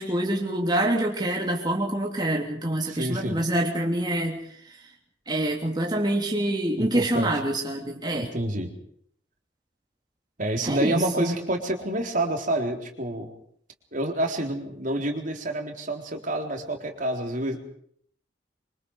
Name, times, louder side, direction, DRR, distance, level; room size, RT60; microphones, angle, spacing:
voice 1, 0.0-4.4 5.3-8.3 10.6-11.3, right 1 dB, 25° right, 0 dB, 3.1 m, -26 dB
voice 2, 2.9-3.4 6.8-7.3 8.2-8.7 10.4-13.3 13.9-17.6, right 1 dB, 45° right, 3 dB, 3.8 m, -28 dB
25.5 x 25.5 x 4.9 m, 0.63 s
head